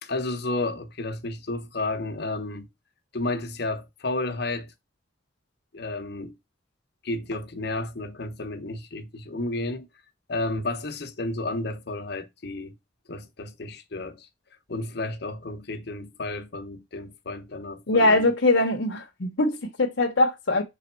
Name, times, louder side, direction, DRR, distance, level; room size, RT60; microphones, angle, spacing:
voice 1, 0.0-2.7 3.1-4.7 5.7-6.3 7.0-9.9 10.3-12.8 13.1-14.3 14.7-18.2, left 2 dB, 60° left, 1.0 m, -32 dB
voice 2, 17.9-20.6, left 2 dB, 85° left, 1.0 m, -22 dB
6.4 x 3.5 x 4.4 m
head